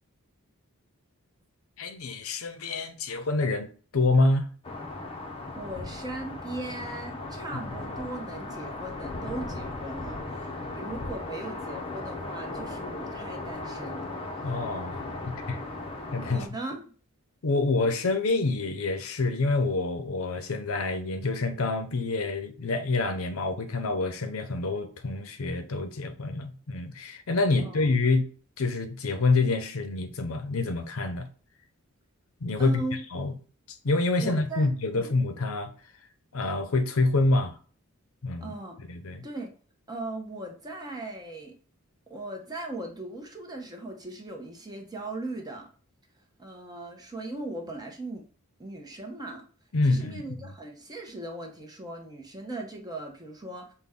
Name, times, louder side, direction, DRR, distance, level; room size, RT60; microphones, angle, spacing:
voice 1, 1.8-4.5 14.4-15.6 16.1-16.4 17.4-28.3 28.6-31.3 32.4-32.8 33.1-33.3 33.7-35.7 36.3-37.6 38.2-38.5 38.9-39.2 49.7-50.5, left 3 dB, 75° left, 0.7 m, -27 dB
sound 1, 4.6-16.5, left 2 dB, 25° left, 0.7 m, -37 dB
voice 2, 5.6-14.0 14.4-14.5 15.8-15.9 16.3-16.9 27.6-27.9 32.6-33.0 34.2-35.1 38.4-38.8 39.2-39.5 39.9-41.6 42.1-45.7 46.4-48.2 48.6-49.4 49.8-53.7, right 2 dB, 20° right, 0.8 m, -38 dB
5.7 x 2.2 x 3.6 m
head